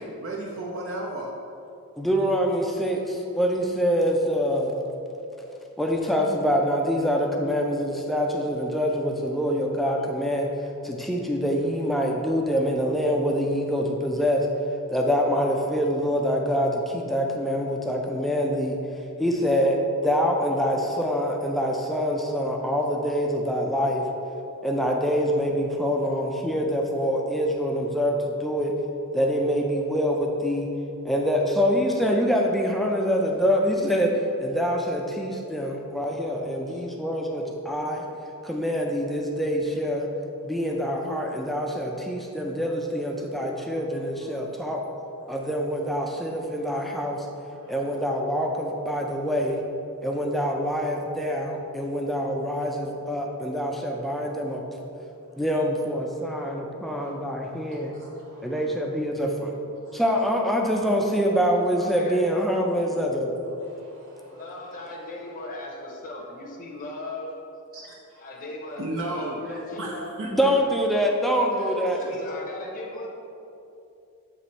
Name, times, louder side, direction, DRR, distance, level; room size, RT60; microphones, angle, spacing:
voice 1, 0.0-1.3 36.7-36.8 44.3-44.7 45.2-45.4 47.5-48.0 49.1-49.2 55.3-55.4 56.4-56.5 57.0-57.1 57.4-58.6 59.8-60.0 63.6-64.7 67.7-68.3 68.8-70.3, right 1 dB, 60° right, -2 dB, 0.6 m, -37 dB
voice 2, 2.0-4.8 5.8-10.5 10.8-14.5 14.9-18.8 19.2-24.0 24.6-28.7 29.1-30.7 31.0-38.0 38.4-40.1 40.4-44.8 45.3-47.3 47.7-49.6 50.0-54.6 55.4-57.9 58.4-59.5 59.9-63.4 70.2-72.0, equal, ahead, 0 dB, 0.4 m, -25 dB
voice 3, 61.8-62.2 64.3-67.4 68.2-70.8 71.3-73.1, left 2 dB, 40° left, -2 dB, 0.6 m, -37 dB
7.7 x 3.0 x 4.1 m, 2.8 s
head